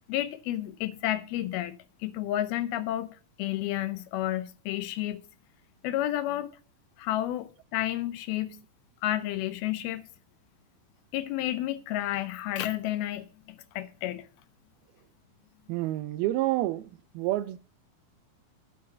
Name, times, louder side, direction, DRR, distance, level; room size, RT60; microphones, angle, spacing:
voice 1, 0.0-1.7 2.0-3.1 3.4-5.2 5.8-6.6 7.0-8.6 9.0-10.0 11.1-14.3, left 13 dB, 85° left, 2.7 m, -31 dB
voice 2, 15.7-17.6, right 16 dB, 90° right, 2.5 m, -29 dB
9.5 x 7.3 x 5.8 m
omnidirectional pair, 4.3 m